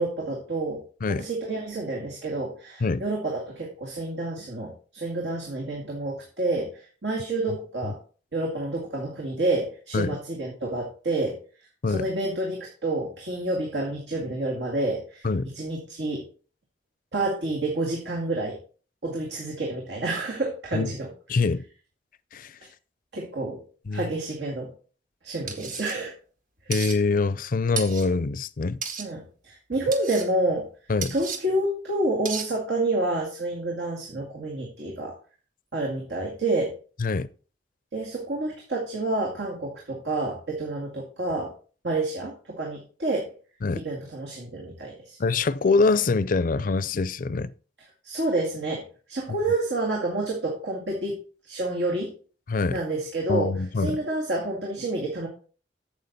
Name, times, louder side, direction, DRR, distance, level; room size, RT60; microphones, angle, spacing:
voice 1, 0.0-0.8 1.2-8.0 8.3-11.4 11.9-15.3 15.5-16.3 17.1-18.6 19.0-21.1 23.1-23.6 23.9-24.7 25.2-26.1 29.0-30.7 31.1-35.1 35.7-36.8 37.9-41.5 41.8-43.3 43.8-45.2 48.0-52.1 52.7-55.3, right 2 dB, 80° right, 2.2 m, -29 dB
voice 2, 21.3-21.6 22.3-22.5 23.9-24.1 26.7-28.8 30.9-31.1 37.0-37.3 43.6-43.8 45.2-47.5 52.5-52.8 53.3-54.0, left 4 dB, 50° left, 0.5 m, -24 dB
sound 1, 25.5-26.0 26.7-27.0 27.8-28.1 28.8-29.1 29.9-30.3 31.0-31.4 32.3-32.5, right 6 dB, 50° right, 1.5 m, -33 dB
9.2 x 7.3 x 4.1 m
head